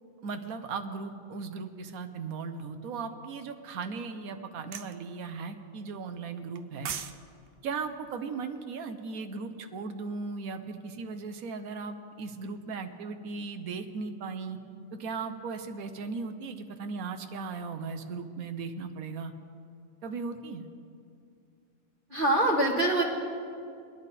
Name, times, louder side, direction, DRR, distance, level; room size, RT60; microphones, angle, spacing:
voice 1, 0.2-6.9 7.6-14.6 14.9-19.3 20.0-20.7, right 4 dB, 90° right, 7 dB, 1.3 m, -37 dB
sound 1, 4.7-4.9 6.5-7.2 7.5-7.6, right 8 dB, 55° right, 0.7 m, -36 dB
voice 2, 22.1-23.0, right 1 dB, 40° right, -2 dB, 1.3 m, -24 dB
23.5 x 10.5 x 4.2 m, 2.4 s
omnidirectional pair, 1.5 m